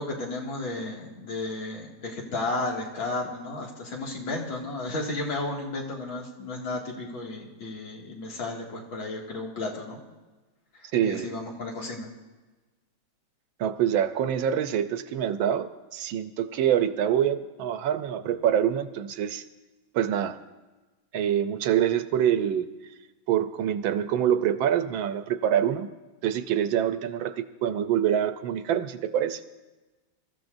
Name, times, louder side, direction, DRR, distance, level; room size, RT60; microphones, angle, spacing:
voice 1, 0.0-10.0 10.7-12.1, left 2 dB, 75° left, -1 dB, 3.0 m, -33 dB
voice 2, 10.9-11.3 13.6-19.4 19.9-20.4 21.1-22.7 23.3-25.9 26.2-29.4, right 10 dB, 75° right, 11 dB, 1.4 m, -25 dB
24.5 x 14.0 x 2.6 m, 1.2 s
omnidirectional pair, 2.2 m